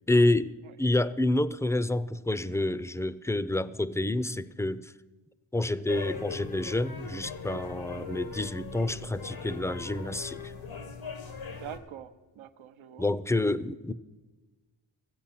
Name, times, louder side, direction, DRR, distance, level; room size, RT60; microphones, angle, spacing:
voice 1, 0.1-0.5 0.8-4.9 5.5-10.5 13.0-13.9, left 2 dB, 5° left, 0.4 m, -28 dB
voice 2, 0.6-1.1 7.9-8.1 11.4-13.1, right 10 dB, 85° right, 0.6 m, -46 dB
sound 1, 5.9-11.8, left 5 dB, 85° left, 1.5 m, -40 dB
14.5 x 8.1 x 5.8 m
cardioid pair, 45°, 47 cm